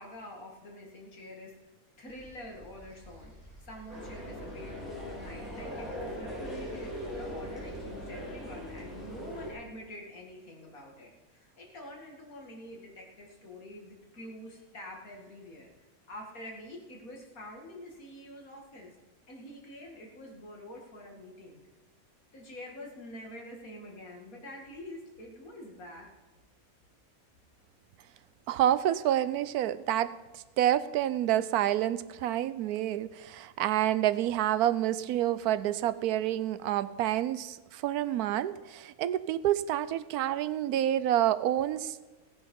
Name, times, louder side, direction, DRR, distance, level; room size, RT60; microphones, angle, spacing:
voice 1, 0.0-1.5 2.0-3.3 3.6-15.7 16.1-18.9 19.3-21.6 22.3-26.1, left 1 dB, 70° left, 0 dB, 2.7 m, -46 dB
sound 1, 2.1-7.8, equal, 20° right, 2.8 m, -53 dB
sound 2, 3.9-9.5, equal, ahead, 4.8 m, -40 dB
voice 2, 28.5-42.0, right 12 dB, 90° right, 16 dB, 1.1 m, -28 dB
16.5 x 9.5 x 5.4 m, 1.2 s
omnidirectional pair, 1.6 m